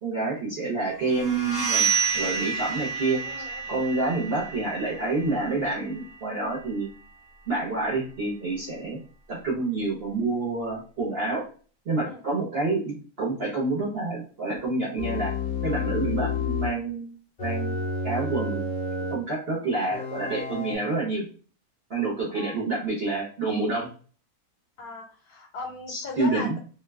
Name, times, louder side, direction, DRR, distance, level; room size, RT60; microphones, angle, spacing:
voice 1, 0.0-1.9 2.1-6.9 7.5-9.0 9.3-11.4 11.9-15.3 15.6-17.1 17.4-17.8 18.0-18.7 19.1-21.2 21.9-23.9 25.9-26.6, right 3 dB, 50° right, -5 dB, 1.0 m, -28 dB
sound 1, 1.1-6.8, right 6 dB, 15° right, 0.8 m, -30 dB
voice 2, 3.3-3.6 12.0-12.2 22.3-22.6 24.8-26.6, left 3 dB, 85° left, 1 dB, 1.1 m, -38 dB
sound 2, 15.0-16.8 17.4-19.2 19.9-20.7, left 4 dB, 55° left, 0.4 m, -30 dB
2.6 x 2.2 x 3.3 m, 0.40 s
omnidirectional pair, 1.6 m